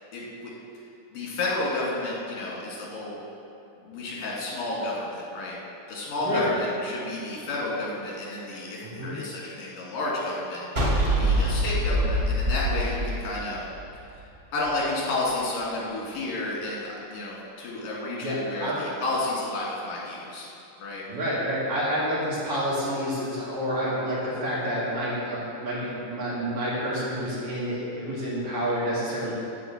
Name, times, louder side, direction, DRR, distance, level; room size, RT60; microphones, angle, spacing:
voice 1, 0.1-0.5 1.1-3.2 3.8-5.6 5.9-13.6 14.5-20.5 20.8-21.0, left 2 dB, 80° left, -5 dB, 4.1 m, -31 dB
voice 2, 6.2-6.5 8.8-9.2 18.2-18.8 21.1-29.4, equal, 60° right, -9 dB, 3.7 m, -29 dB
sound 1, 10.8-14.0, equal, 85° right, 0.5 m, -24 dB
13.5 x 4.7 x 7.2 m, 2.8 s
omnidirectional pair, 3.8 m